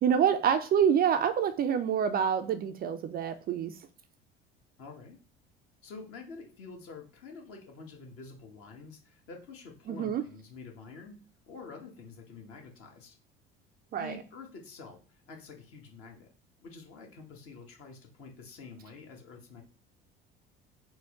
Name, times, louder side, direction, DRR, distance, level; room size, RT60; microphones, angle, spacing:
voice 1, 0.0-3.7 9.9-10.2 13.9-14.2, right 8 dB, 30° right, 9 dB, 0.4 m, -27 dB
voice 2, 4.8-5.2 5.8-13.1 13.9-16.3 16.6-19.6, left 4 dB, 50° left, 2 dB, 1.3 m, -48 dB
4.5 x 2.1 x 3.6 m, 0.39 s
figure-of-eight pair, 65°, 30 cm